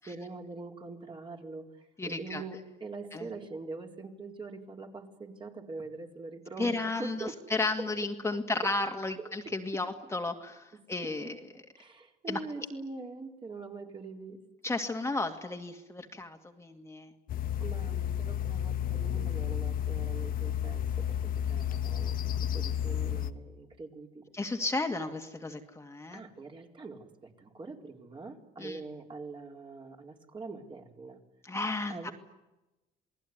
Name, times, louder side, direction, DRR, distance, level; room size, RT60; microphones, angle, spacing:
voice 1, 0.1-7.4 7.8-7.9 8.3-8.7 9.2-9.8 11.0-14.4 17.6-21.2 21.5-22.2 22.5-24.6 26.1-31.2 31.9-32.1, right 3 dB, 30° right, 2 dB, 4.3 m, -43 dB
voice 2, 2.0-2.4 3.1-3.3 6.6-11.4 12.3-12.4 14.6-17.1 24.3-26.2 28.6-28.8 31.5-32.1, left 2 dB, 15° left, 4 dB, 2.3 m, -33 dB
sound 1, 17.3-23.3, left 10 dB, 55° left, 1.4 m, -32 dB
28.5 x 19.0 x 9.7 m, 0.98 s
cardioid pair, 110°, 17 cm